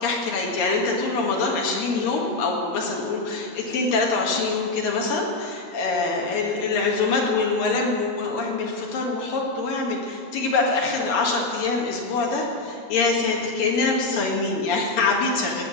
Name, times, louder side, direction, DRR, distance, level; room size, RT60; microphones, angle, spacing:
voice 1, 0.0-15.6, left 3 dB, 65° left, -1 dB, 3.4 m, -24 dB
17.5 x 7.1 x 8.7 m, 2.5 s
omnidirectional pair, 4.5 m